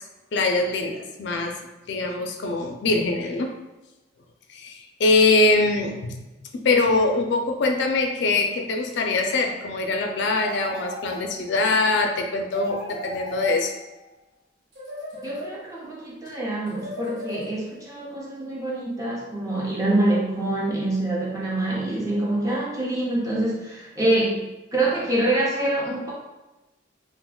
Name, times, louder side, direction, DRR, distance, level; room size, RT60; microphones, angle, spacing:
voice 1, 0.3-1.6 1.9-3.5 4.5-6.3 6.5-13.7, left 3 dB, 60° left, 3 dB, 0.4 m, -23 dB
sound 1, 10.4-11.7 12.5-14.0 14.7-15.9 16.7-17.9, equal, 75° right, 0.9 m, -37 dB
voice 2, 15.2-24.4 24.7-26.1, right 1 dB, 20° right, -5 dB, 0.7 m, -25 dB
2.4 x 2.2 x 3.6 m, 1.0 s
head